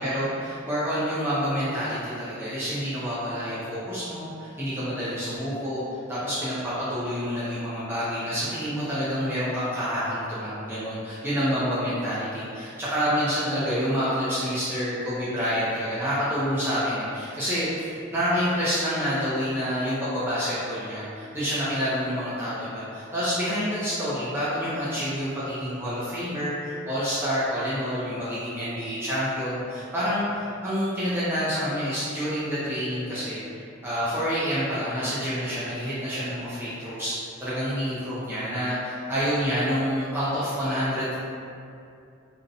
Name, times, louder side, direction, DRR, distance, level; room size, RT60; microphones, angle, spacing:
voice 1, 0.0-5.8 6.1-33.4 33.8-41.1, equal, 10° right, -11 dB, 0.4 m, -28 dB
2.5 x 2.0 x 2.6 m, 2.5 s
head